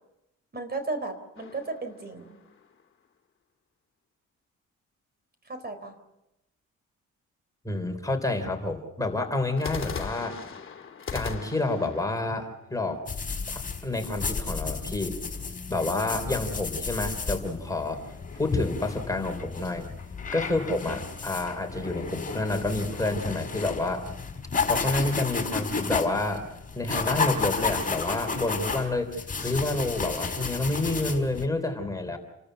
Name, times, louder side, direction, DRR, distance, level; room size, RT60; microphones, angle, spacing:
voice 1, 0.5-2.4 5.5-5.9, right 3 dB, 30° right, 9 dB, 4.2 m, -34 dB
sound 1, 1.4-2.8 9.6-13.5, left 6 dB, 40° left, 2.5 m, -39 dB
voice 2, 7.6-10.4 11.1-13.0 13.5-15.2 15.7-18.0 18.3-19.9 20.3-24.1 24.6-26.4 26.8-32.2, left 2 dB, 10° left, 5 dB, 3.7 m, -29 dB
sound 2, 13.1-31.4, left 4 dB, 25° left, 4.6 m, -32 dB
29.5 x 13.5 x 7.9 m, 0.92 s
cardioid pair, 90°, 30 cm